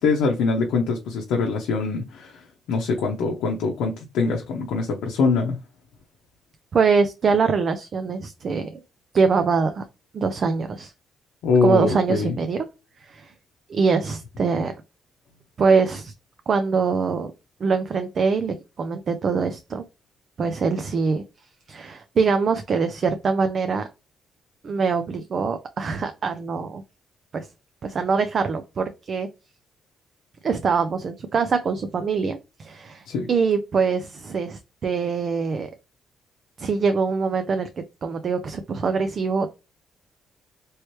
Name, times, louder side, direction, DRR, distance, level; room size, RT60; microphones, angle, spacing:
voice 1, 0.0-5.6 11.4-12.4 33.1-33.3, left 4 dB, 85° left, 0.6 m, -23 dB
voice 2, 6.7-8.8 9.1-9.9 10.1-10.9 11.6-12.6 13.0-13.3 13.7-14.7 15.6-16.1 16.5-17.3 17.6-19.8 20.4-21.2 21.7-23.9 24.6-26.8 27.3-27.5 27.8-29.3 30.4-35.7 36.6-37.7 38.0-39.5, right 5 dB, 50° right, 0.4 m, -23 dB
3.1 x 3.1 x 3.0 m
cardioid pair, 90°, 0 cm